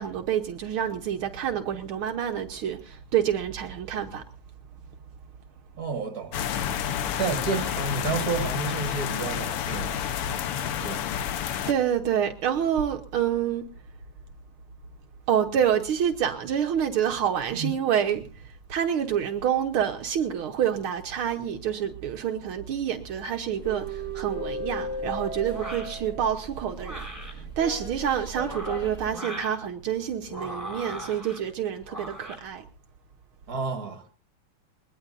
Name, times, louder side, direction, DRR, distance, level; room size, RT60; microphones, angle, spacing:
voice 1, 0.0-4.2 11.7-13.7 15.3-32.6, right 9 dB, 75° right, 1.9 m, -27 dB
voice 2, 5.8-6.8 7.2-10.0 10.8-11.1 17.5-17.7 33.5-34.2, right 5 dB, 45° right, 2.4 m, -31 dB
sound 1, 6.3-11.7, left 9 dB, 90° left, 1.9 m, -29 dB
sound 2, 23.6-29.1, right 1 dB, 30° left, 3.3 m, -36 dB
sound 3, 25.5-26.0 26.8-27.3 28.3-29.6 30.3-31.4 31.9-32.4, equal, 5° right, 6.3 m, -39 dB
21.5 x 21.0 x 2.6 m
omnidirectional pair, 2.4 m